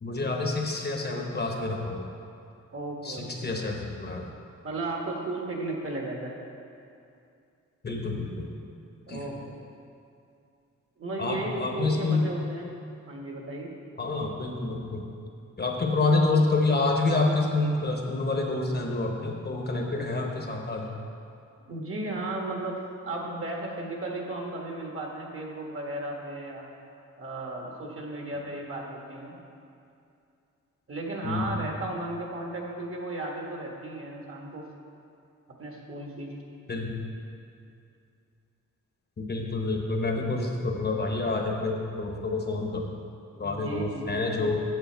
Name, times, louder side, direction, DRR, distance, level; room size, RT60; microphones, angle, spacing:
voice 1, 0.0-2.0 3.0-4.2 7.8-8.5 9.1-9.3 11.2-12.3 14.0-15.0 15.6-20.9 31.2-31.6 36.7-37.0 39.2-42.9 43.4-44.6, left 3 dB, 35° left, 1 dB, 0.9 m, -28 dB
voice 2, 2.7-3.5 4.6-6.3 9.1-9.5 11.0-12.6 13.1-13.7 19.9-20.0 21.7-22.8 23.0-26.6 27.2-29.3 30.9-34.7 35.6-36.3 43.3-44.5, right 2 dB, 45° right, 0 dB, 1.3 m, -35 dB
8.2 x 7.7 x 4.5 m, 2.6 s
wide cardioid pair, 125°, 31 cm